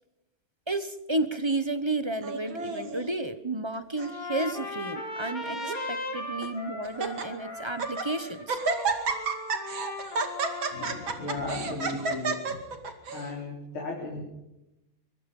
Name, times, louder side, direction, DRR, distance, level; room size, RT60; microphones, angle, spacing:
voice 1, 0.7-8.6, right 2 dB, 20° right, 11 dB, 0.7 m, -32 dB
Laughter, 2.2-3.0 3.7-4.1 4.4-4.5 5.2-5.9 6.4-6.5 6.8-7.3 7.7-8.1 8.5-13.3, right 4 dB, 70° right, 3.1 m, -31 dB
Trumpet, 4.0-11.3, left 2 dB, 40° left, 3.3 m, -38 dB
voice 2, 10.7-12.4 13.1-14.2, left 3 dB, 90° left, -2 dB, 4.9 m, -35 dB
23.5 x 23.5 x 5.5 m, 0.91 s
omnidirectional pair, 2.3 m